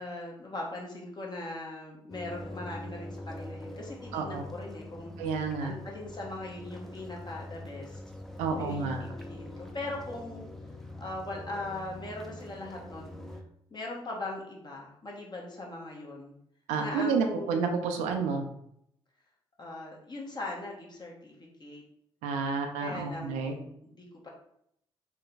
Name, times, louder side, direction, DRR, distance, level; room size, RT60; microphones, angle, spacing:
voice 1, 0.0-8.0 8.6-10.5 11.0-13.2 13.7-16.3 16.8-17.7 19.6-21.8 22.5-24.3, left 2 dB, 35° left, -2 dB, 1.2 m, -40 dB
sound 1, 2.1-13.4, left 1 dB, 5° left, 0.6 m, -44 dB
voice 2, 4.1-4.4 5.2-5.7 8.4-9.0 16.7-18.5 22.2-23.5, right 5 dB, 85° right, 4 dB, 0.5 m, -30 dB
3.2 x 2.2 x 3.9 m, 0.73 s
hypercardioid pair, 45°, 12 cm